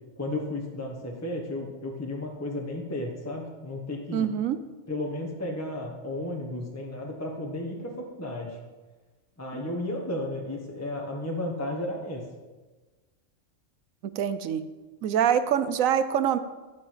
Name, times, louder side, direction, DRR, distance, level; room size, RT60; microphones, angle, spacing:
voice 1, 0.2-4.3 4.9-8.6 9.4-12.2, left 1 dB, 10° left, 0 dB, 1.3 m, -33 dB
voice 2, 4.1-4.6 14.0-14.6 15.0-16.4, right 9 dB, 85° right, 12 dB, 1.1 m, -25 dB
13.0 x 5.4 x 7.4 m, 1.3 s
omnidirectional pair, 1.4 m